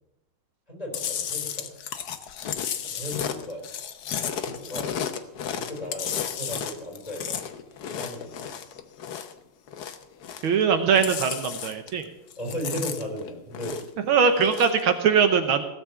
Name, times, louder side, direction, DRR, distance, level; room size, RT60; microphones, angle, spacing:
voice 1, 0.7-1.7 2.8-3.6 4.2-4.9 5.5-7.4 7.8-8.6 12.4-13.8, equal, 15° left, -1 dB, 4.0 m, -36 dB
Chewing mastication, 0.9-9.4 9.7-10.6 10.9-12.0 12.3-14.0 14.3-14.8, left 8 dB, 55° left, 1.2 m, -33 dB
voice 2, 10.4-12.1 14.1-15.6, right 6 dB, 70° right, 8 dB, 1.8 m, -21 dB
16.5 x 7.5 x 7.1 m, 0.93 s
omnidirectional pair, 2.4 m